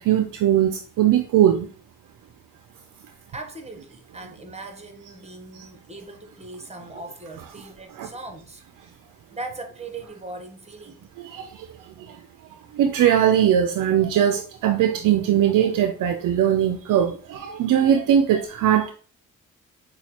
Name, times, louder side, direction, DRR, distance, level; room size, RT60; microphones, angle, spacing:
voice 1, 0.0-1.7 8.0-8.1 11.3-11.5 12.8-18.9, right 10 dB, 70° right, 0.5 m, -20 dB
voice 2, 3.3-9.0 9.3-11.1, right 2 dB, 20° right, 1.1 m, -39 dB
6.4 x 2.3 x 2.9 m
supercardioid pair, 55°, 33 cm